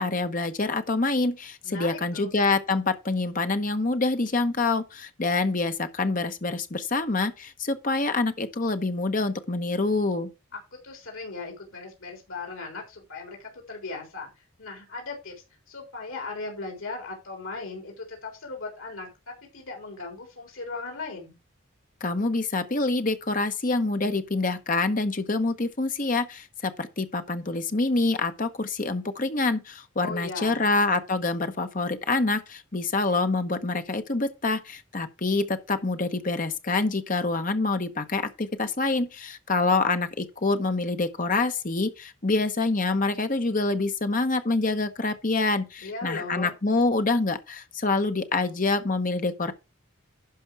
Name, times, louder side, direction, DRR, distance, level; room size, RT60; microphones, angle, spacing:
voice 1, 0.0-10.3 22.0-49.5, left 3 dB, 40° left, 1.0 m, -26 dB
voice 2, 1.6-2.3 10.7-14.3 14.6-15.3 15.7-19.1 19.5-21.4 30.0-30.6 45.8-46.5, left 3 dB, 80° left, 3.8 m, -37 dB
11.5 x 5.2 x 4.7 m
head